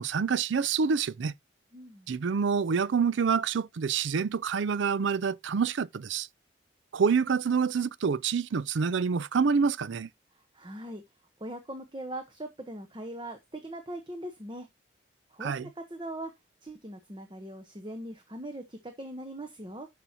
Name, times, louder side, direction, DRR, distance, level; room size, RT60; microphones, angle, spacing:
voice 1, 0.0-1.3 2.1-6.3 6.9-10.1 15.4-15.7, right 6 dB, 75° right, 0.4 m, -27 dB
voice 2, 1.7-2.1 10.5-11.0 11.4-14.7 15.3-16.3 16.6-19.9, right 1 dB, 25° right, 0.9 m, -40 dB
11.0 x 5.8 x 2.8 m
head